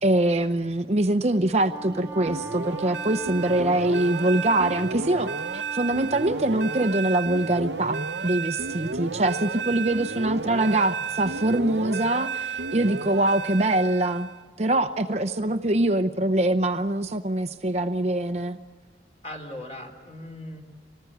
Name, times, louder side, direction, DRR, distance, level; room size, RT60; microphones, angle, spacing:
voice 1, 0.0-14.3 14.6-18.6, right 1 dB, 35° right, 7 dB, 0.7 m, -24 dB
Wind instrument woodwind instrument, 1.4-6.9, right 3 dB, 10° right, 1.9 m, -41 dB
sound 1, 2.3-14.4, right 4 dB, 75° right, 0.8 m, -32 dB
voice 2, 9.9-10.3 10.9-11.0 19.2-20.6, left 1 dB, 35° left, 3 dB, 4.1 m, -40 dB
25.0 x 19.0 x 9.3 m, 1.5 s
head